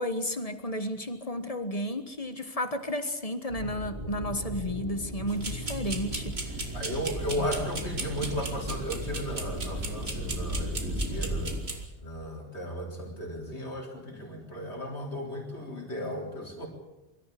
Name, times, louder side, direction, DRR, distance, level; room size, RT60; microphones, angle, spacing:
voice 1, 0.0-6.4 7.4-7.5, left 1 dB, 35° left, 9 dB, 1.5 m, -32 dB
sound 1, 3.5-11.6, equal, 20° right, 2.9 m, -36 dB
sound 2, 5.3-11.9, right 3 dB, 70° right, 2.5 m, -37 dB
voice 2, 6.7-11.6 12.0-16.7, equal, 85° left, -1 dB, 4.2 m, -35 dB
23.5 x 14.0 x 8.6 m, 0.99 s
omnidirectional pair, 1.1 m